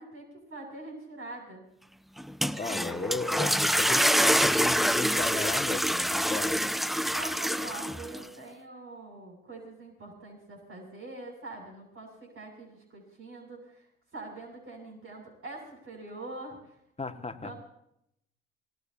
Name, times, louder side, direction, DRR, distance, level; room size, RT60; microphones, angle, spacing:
voice 1, 0.0-1.6 7.1-13.9 14.1-16.7 17.1-17.6, right 2 dB, 40° right, 0 dB, 7.5 m, -44 dB
sound 1, 2.2-8.2, equal, ahead, 0.6 m, -26 dB
voice 2, 2.6-6.6 17.0-17.5, left 4 dB, 20° left, 6 dB, 2.0 m, -35 dB
26.5 x 18.0 x 2.9 m, 0.75 s
hypercardioid pair, 55°, 32 cm